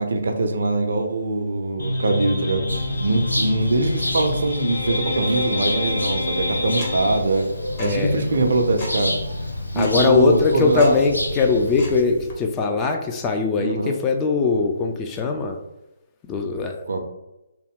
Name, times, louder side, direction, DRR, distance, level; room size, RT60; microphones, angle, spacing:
voice 1, 0.0-2.6 3.0-7.5 7.8-9.1 9.7-11.0 13.6-14.0 16.9-17.0, right 2 dB, 65° right, 5 dB, 0.5 m, -22 dB
sound 1, 1.8-7.2, left 2 dB, 70° left, 0.9 m, -28 dB
sound 2, 2.7-12.0, left 1 dB, 90° left, 0.5 m, -29 dB
Tick-tock, 6.2-12.3, left 1 dB, 35° left, 0.9 m, -38 dB
voice 2, 7.8-8.2 9.8-15.6 16.2-16.8, left 4 dB, 20° left, 3 dB, 0.3 m, -21 dB
3.0 x 2.1 x 3.5 m, 0.94 s
figure-of-eight pair, 140°, 0 cm